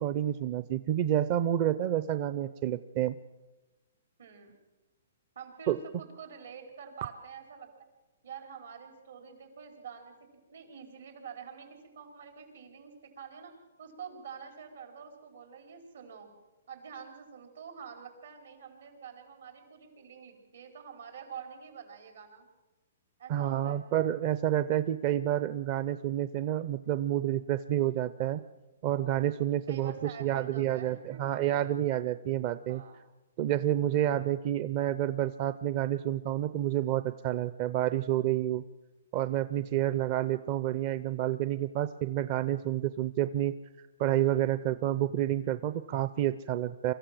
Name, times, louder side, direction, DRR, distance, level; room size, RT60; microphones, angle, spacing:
voice 1, 0.0-3.2 5.7-5.8 23.3-28.4 28.8-32.8 33.4-38.6 39.1-43.5 44.0-46.9, right 12 dB, 35° right, 13 dB, 0.6 m, -29 dB
voice 2, 4.2-4.5 5.3-7.7 8.2-10.1 10.5-13.5 13.8-16.3 16.7-22.5 23.2-23.8 29.7-31.4 32.7-33.0, right 7 dB, 80° right, 5 dB, 4.8 m, -47 dB
24.0 x 14.0 x 7.7 m, 1.1 s
hypercardioid pair, 150°, 0 cm